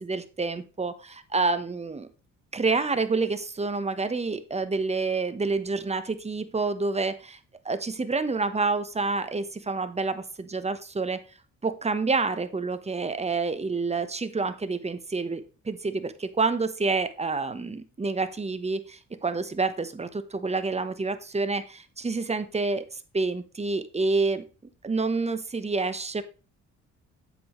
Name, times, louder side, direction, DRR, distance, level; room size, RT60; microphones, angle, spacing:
voice 1, 0.0-2.1 2.5-7.4 7.6-11.2 11.6-22.9 23.1-24.4 24.8-26.2, right 3 dB, 20° right, 11 dB, 1.0 m, -28 dB
8.6 x 7.9 x 3.1 m, 0.33 s
cardioid pair, 90°, 30 cm